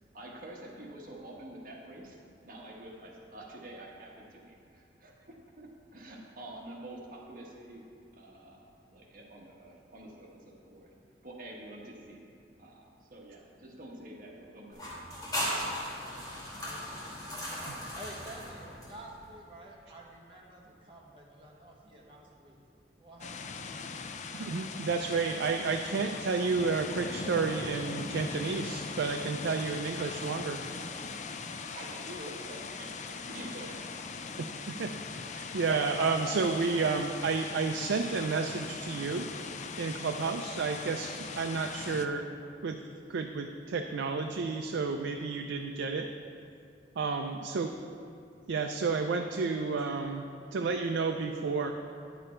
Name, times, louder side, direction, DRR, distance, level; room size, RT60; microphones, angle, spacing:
voice 1, 0.1-2.2 2.4-7.8 8.1-10.9 11.2-12.2 12.6-14.9 31.7-33.9, right 1 dB, 50° right, -1 dB, 1.2 m, -47 dB
sound 1, 14.7-19.3, equal, 20° left, 1.6 m, -37 dB
voice 2, 16.6-17.1 17.9-22.6 23.0-23.7 47.0-47.2, right 1 dB, 30° right, -3 dB, 1.2 m, -49 dB
sound 2, 23.2-42.1, left 4 dB, 40° left, 0.4 m, -40 dB
voice 3, 24.3-30.6 34.7-34.9 35.3-39.3 39.8-42.3 42.6-42.8 43.1-46.1 47.0-47.7 48.5-50.2 50.5-51.7, right 4 dB, 85° right, 4 dB, 0.4 m, -31 dB
9.5 x 6.9 x 4.4 m, 2.4 s
head